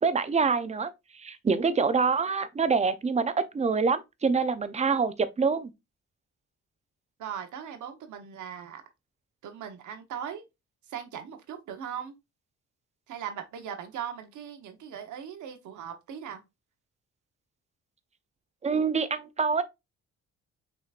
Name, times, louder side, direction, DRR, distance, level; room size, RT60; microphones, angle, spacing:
voice 1, 0.0-0.9 1.2-5.7 18.6-19.6, right 5 dB, 20° right, 0.5 m, -26 dB
voice 2, 7.2-8.8 9.4-10.4 10.9-12.1 13.1-16.4, right 8 dB, 75° right, 1.1 m, -39 dB
5.7 x 3.0 x 2.4 m
cardioid pair, 90°, 30 cm